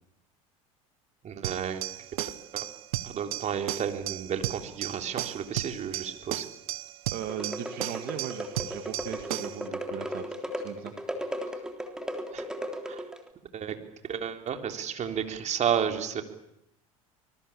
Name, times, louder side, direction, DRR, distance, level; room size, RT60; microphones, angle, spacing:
voice 1, 1.2-1.8 2.1-2.7 3.0-6.5 12.3-12.5 12.9-13.0 13.5-13.8 14.1-16.2, right 8 dB, 40° right, 6 dB, 3.5 m, -32 dB
sound 1, 1.4-9.6, right 15 dB, 75° right, 1.0 m, -35 dB
voice 2, 7.1-10.9 11.2-11.5, right 11 dB, 55° right, 7 dB, 2.1 m, -38 dB
sound 2, 7.2-13.3, equal, 5° right, 3.5 m, -36 dB
25.0 x 21.0 x 8.7 m, 0.81 s
hypercardioid pair, 75°, 18 cm